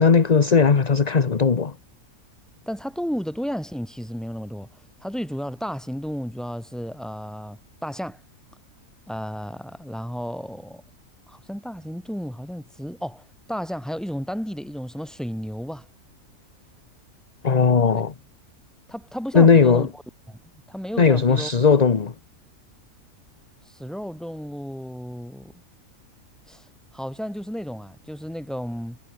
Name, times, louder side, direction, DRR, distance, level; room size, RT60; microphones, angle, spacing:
voice 1, 0.0-1.7 17.4-18.1 19.3-19.9 21.0-22.1, left 5 dB, 30° left, 1.0 m, -17 dB
voice 2, 2.7-4.7 5.0-8.2 9.1-10.8 11.3-15.9 17.9-18.0 18.9-19.9 20.3-20.4 20.7-21.5 23.6-25.5 26.5-26.6 26.9-29.0, equal, ahead, 3.5 m, -33 dB
omnidirectional pair, 1.5 m